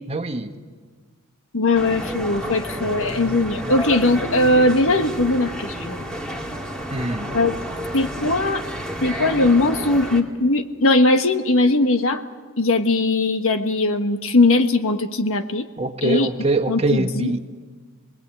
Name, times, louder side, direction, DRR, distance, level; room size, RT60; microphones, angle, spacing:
voice 1, 0.1-0.5 6.9-7.3 15.8-17.4, right 2 dB, 30° right, 6 dB, 1.4 m, -23 dB
voice 2, 1.5-6.0 7.3-7.5 7.9-8.6 9.0-12.2 12.6-15.7 16.0-16.3 16.7-17.3, left 2 dB, 65° left, 7 dB, 1.6 m, -19 dB
sound 1, 1.7-10.2, equal, 5° left, 2.6 m, -30 dB
28.0 x 20.0 x 8.9 m, 1.5 s
head